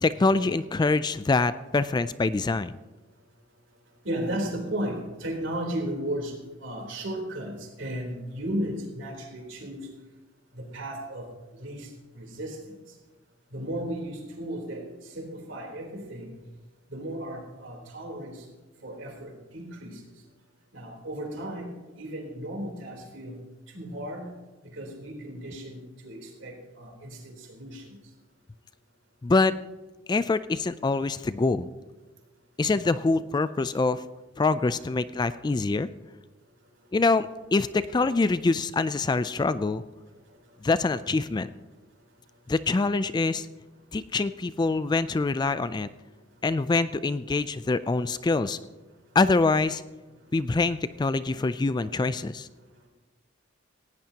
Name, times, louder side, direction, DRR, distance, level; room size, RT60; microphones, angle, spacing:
voice 1, 0.0-2.8 29.2-29.5 30.1-31.7 32.6-34.0 34.4-35.9 36.9-39.8 40.6-41.5 42.5-43.5 43.9-45.9 46.4-48.6 49.2-49.8 50.3-52.5, left 3 dB, 20° left, 14 dB, 0.3 m, -25 dB
voice 2, 4.0-6.3 6.6-9.9 10.5-11.9 12.1-12.8 13.5-16.3 16.9-18.4 18.8-20.0 20.7-23.4 23.7-24.3 24.6-28.0, right 1 dB, 65° right, 0 dB, 3.6 m, -35 dB
18.0 x 16.0 x 2.9 m, 1.2 s
head